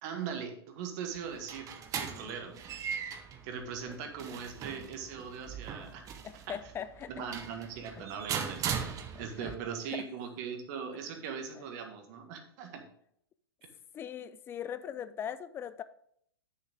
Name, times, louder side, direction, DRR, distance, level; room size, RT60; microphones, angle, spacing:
voice 1, 0.0-1.7 2.0-2.5 3.4-6.0 6.3-6.6 7.1-8.6 9.2-12.8, right 7 dB, 45° right, 1.7 m, -40 dB
sound 1, 1.1-9.5, right 7 dB, 25° right, 0.9 m, -39 dB
voice 2, 6.2-7.1 8.0-8.1 9.1-9.6 9.9-10.1 11.5-11.6 13.9-15.8, left 9 dB, 15° left, 0.3 m, -41 dB
8.3 x 6.5 x 3.6 m
hypercardioid pair, 120°, 13 cm